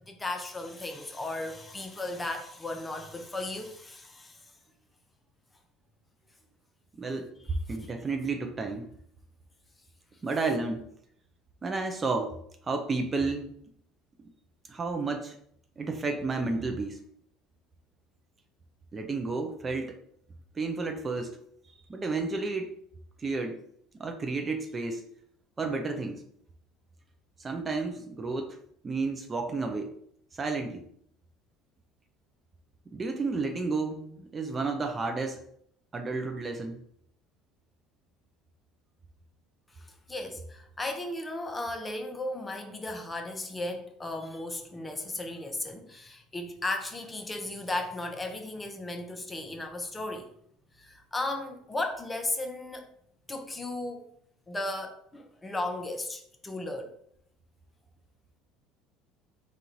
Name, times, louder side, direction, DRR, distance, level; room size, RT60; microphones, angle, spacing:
voice 1, 0.1-4.4 7.5-7.9 40.1-50.3 50.8-52.9 53.3-54.1 54.5-56.9, left 2 dB, 20° left, 0.8 m, -35 dB
voice 2, 7.0-7.3 7.7-8.9 10.2-10.9 11.6-12.4 12.7-13.5 14.7-15.4 15.8-17.0 18.9-20.0 20.5-21.4 21.6-22.7 23.2-23.6 24.0-25.1 25.6-26.2 27.4-28.6 28.8-30.0 30.3-30.8 32.9-35.4 35.9-36.8, right 3 dB, 30° right, 0.6 m, -31 dB
3.8 x 2.5 x 4.4 m
hypercardioid pair, 65°, 0 cm